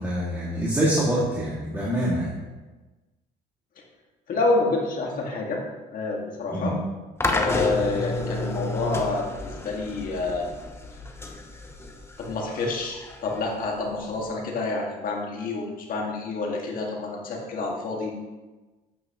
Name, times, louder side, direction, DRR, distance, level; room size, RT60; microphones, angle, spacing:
voice 1, 0.0-2.3 6.5-6.7, right 1 dB, 15° right, -7 dB, 2.1 m, -25 dB
voice 2, 4.3-5.6 5.9-6.8 7.3-10.5 12.2-18.1, left 3 dB, 55° left, 0 dB, 1.9 m, -28 dB
sound 1, 7.2-14.3, left 2 dB, 15° left, 0.8 m, -31 dB
9.2 x 7.8 x 3.0 m, 1.2 s
cardioid pair, 110°, 17 cm